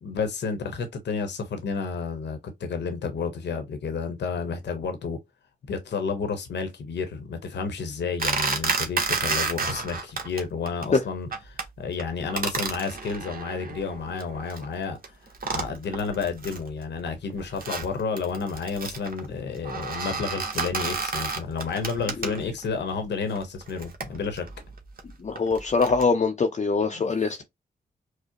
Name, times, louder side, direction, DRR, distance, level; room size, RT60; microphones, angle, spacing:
voice 1, 0.0-5.2 5.6-15.0 15.5-24.4, left 5 dB, 80° left, 0.9 m, -31 dB
sound 1, 8.2-10.4 10.7-11.0 11.3-11.7 12.0-14.6 15.0-15.1 15.3-16.7 17.1-22.7 23.3-26.1, right 4 dB, 55° right, 0.9 m, -31 dB
voice 2, 25.2-27.4, left 4 dB, 40° left, 0.6 m, -23 dB
4.8 x 2.0 x 2.9 m
cardioid pair, 55°, 18 cm